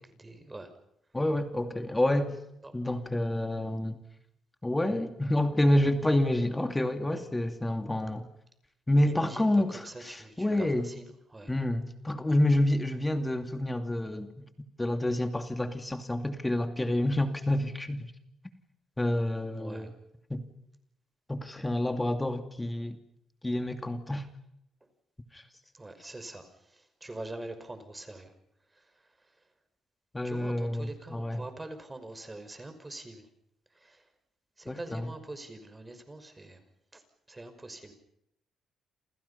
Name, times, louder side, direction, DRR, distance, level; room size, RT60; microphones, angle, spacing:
voice 1, 0.2-0.7 9.0-9.4 9.9-11.5 19.5-19.9 25.7-26.4 27.0-28.3 30.2-33.2 33.8-34.0 34.6-36.6 36.9-37.0 37.3-37.9, right 2 dB, 20° right, 9 dB, 5.8 m, -44 dB
voice 2, 1.1-2.4 2.7-4.0 4.6-8.2 8.9-10.9 11.5-14.3 14.8-18.0 19.0-19.9 20.3-20.4 21.3-23.0 23.4-24.3 25.3-25.4 30.1-31.4 34.7-35.1, left 1 dB, 15° left, 7 dB, 2.5 m, -28 dB
29.5 x 28.0 x 5.8 m, 0.77 s
cardioid pair, 90°, 0 cm